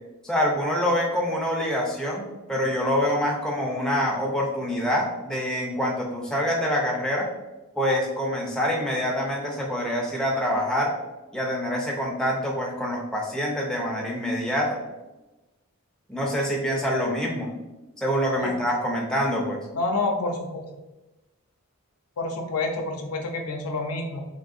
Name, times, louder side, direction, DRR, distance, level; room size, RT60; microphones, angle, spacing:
voice 1, 0.2-7.3 7.8-11.0 11.3-14.8 16.1-17.5 18.0-19.7, equal, 5° left, -2 dB, 0.4 m, -26 dB
voice 2, 19.7-20.7 22.2-24.2, left 2 dB, 85° left, 2 dB, 0.6 m, -28 dB
3.6 x 2.6 x 2.5 m, 1.0 s
head